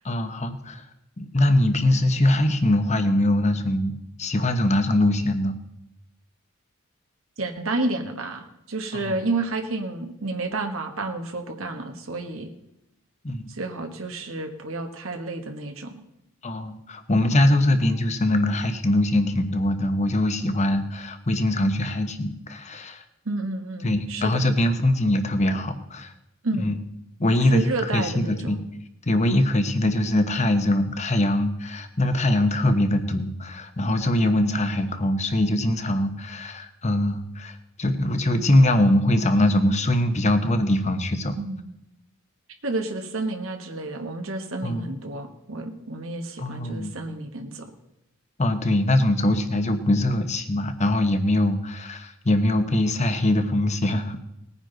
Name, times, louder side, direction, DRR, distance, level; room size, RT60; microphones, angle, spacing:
voice 1, 0.0-0.8 1.2-3.9 4.2-5.6 9.1-9.2 13.2-13.4 16.4-23.0 23.8-26.1 26.6-26.8 27.2-28.6 29.1-41.4 44.6-44.9 46.4-46.9 48.4-54.3, left 1 dB, 35° left, 8 dB, 1.1 m, -22 dB
voice 2, 7.4-12.5 13.5-15.9 23.2-24.5 26.4-26.7 27.4-28.6 41.3-41.7 42.6-47.7, right 2 dB, 70° right, 4 dB, 1.4 m, -30 dB
19.5 x 9.8 x 4.0 m, 0.86 s
head